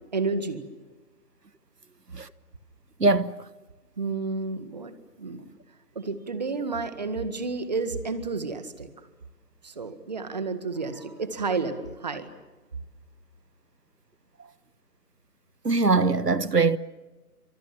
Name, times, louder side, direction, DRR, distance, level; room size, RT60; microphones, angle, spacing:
voice 1, 0.1-0.6 4.0-5.4 6.0-9.1 9.6-12.3, right 4 dB, 25° right, 1.8 m, -31 dB
voice 2, 3.0-3.3 15.6-16.8, right 3 dB, 85° right, 1.3 m, -21 dB
26.5 x 26.0 x 7.4 m
figure-of-eight pair, 160°, 46 cm